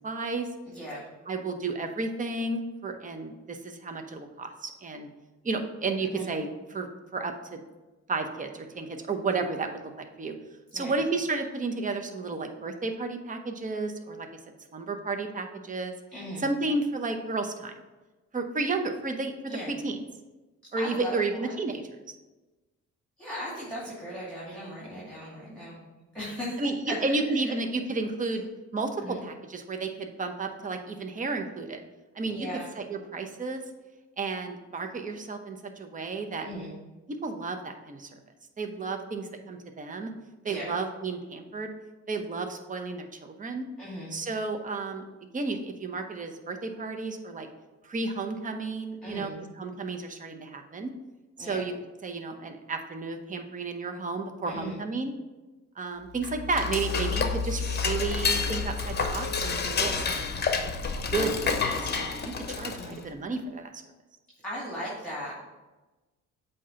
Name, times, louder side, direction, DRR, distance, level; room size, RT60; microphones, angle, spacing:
voice 1, 0.0-0.5 1.3-5.1 5.4-7.6 8.1-10.3 10.7-14.3 14.7-15.9 16.4-17.7 18.3-19.3 19.7-20.0 20.7-21.8 26.6-31.8 32.1-32.5 32.8-33.6 34.2-36.5 37.2-38.2 38.6-40.1 40.4-41.7 42.1-43.6 44.1-45.0 45.3-47.5 47.8-49.3 49.6-50.9 51.4-51.7 52.0-55.1 55.8-60.7 61.1-63.8, right 3 dB, 25° right, 5 dB, 0.8 m, -32 dB
voice 2, 0.7-1.0 6.0-6.3 10.7-11.0 16.1-16.5 19.5-19.7 20.8-21.8 23.2-25.8 26.1-27.0 27.3-27.5 29.0-29.2 32.2-32.7 36.4-36.7 40.4-40.7 43.8-44.2 49.0-49.3 51.4-51.6 54.4-54.8 62.8-63.0 64.4-65.3, equal, 5° left, -7 dB, 2.4 m, -38 dB
Dishes pots and pans / Cutlery silverware, 56.2-63.0, left 5 dB, 35° left, 0.8 m, -29 dB
8.2 x 2.9 x 5.6 m, 1.1 s
cardioid pair, 90°, 30 cm